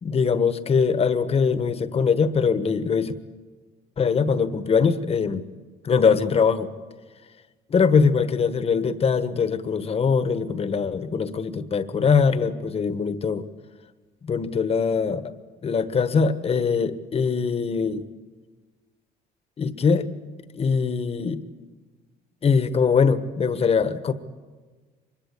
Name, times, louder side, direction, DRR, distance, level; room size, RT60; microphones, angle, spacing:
voice 1, 0.0-3.1 4.0-5.4 5.8-6.7 7.7-13.5 14.2-15.3 15.6-18.0 19.6-20.1 20.5-21.4 22.4-24.1, left 5 dB, 35° left, 12 dB, 1.4 m, -22 dB
24.5 x 22.0 x 8.3 m, 1.4 s
cardioid pair, 110°, 17 cm